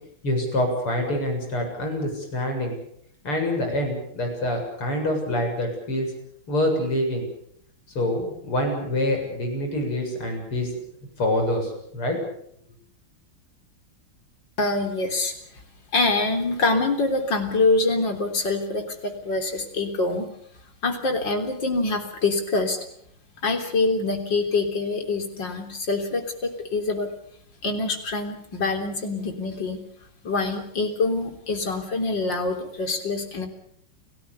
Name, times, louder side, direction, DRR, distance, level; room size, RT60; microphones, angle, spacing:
voice 1, 0.2-2.8 3.2-6.1 6.5-7.3 7.9-10.7 11.2-12.2, left 1 dB, 75° left, 3 dB, 8.2 m, -26 dB
voice 2, 14.6-15.3 15.9-20.3 20.8-22.8 23.4-27.1 27.6-29.8 30.2-33.5, left 3 dB, 55° left, 5 dB, 4.2 m, -25 dB
30.0 x 18.5 x 6.9 m, 0.69 s
omnidirectional pair, 2.4 m